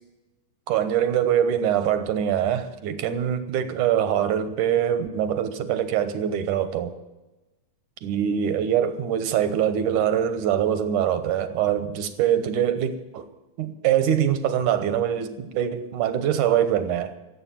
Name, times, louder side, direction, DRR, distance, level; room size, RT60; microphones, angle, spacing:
voice 1, 0.7-6.9 8.0-13.3 13.6-17.1, right 9 dB, 80° right, 2.5 m, -23 dB
16.5 x 7.9 x 7.6 m
omnidirectional pair, 3.5 m